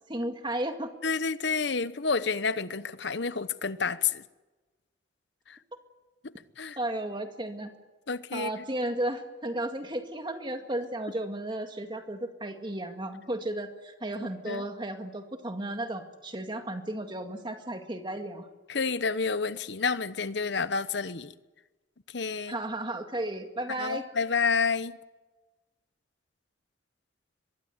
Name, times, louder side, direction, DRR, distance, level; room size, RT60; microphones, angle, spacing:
voice 1, 0.1-0.9 6.8-7.7 8.3-18.5 22.5-24.1, right 1 dB, 25° right, 2.0 m, -34 dB
voice 2, 1.0-4.2 6.6-6.8 8.1-8.5 14.5-14.6 18.7-21.3 22.1-22.6 23.8-25.0, left 5 dB, 65° left, 0.9 m, -29 dB
24.0 x 22.0 x 8.1 m
head